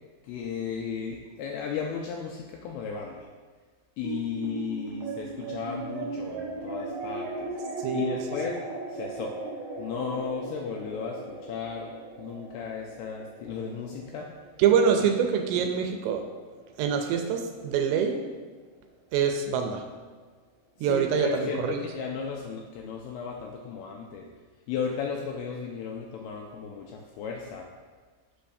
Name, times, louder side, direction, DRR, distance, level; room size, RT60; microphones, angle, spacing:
voice 1, 0.2-3.3 4.0-7.5 7.9-8.6 8.9-9.4 9.8-11.9 12.2-14.3 20.9-24.3 24.7-27.7, left 6 dB, 85° left, 1 dB, 2.3 m, -35 dB
sound 1, 4.0-16.6, right 3 dB, 55° right, 2.6 m, -38 dB
voice 2, 7.8-8.2 14.6-16.2 16.8-18.3 19.1-19.8 20.8-21.8, right 7 dB, 85° right, 5 dB, 2.6 m, -25 dB
8.4 x 5.7 x 2.6 m, 1.5 s
omnidirectional pair, 5.1 m